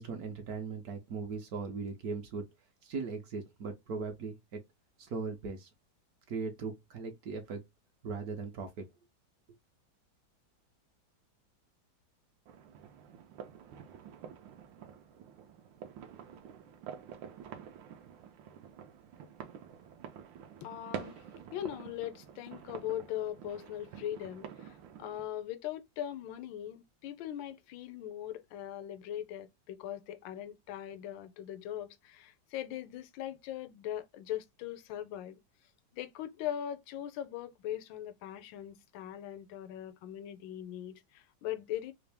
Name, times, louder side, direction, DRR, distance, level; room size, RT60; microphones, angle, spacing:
voice 1, 0.0-2.5 2.8-4.6 5.0-5.7 6.3-7.6 8.0-8.9, right 4 dB, 65° right, 1.0 m, -39 dB
sound 1, 12.5-25.2, right 8 dB, 85° right, 1.3 m, -48 dB
voice 2, 20.6-35.4 35.9-41.9, left 11 dB, 85° left, 1.3 m, -40 dB
3.5 x 2.5 x 3.3 m
omnidirectional pair, 2.0 m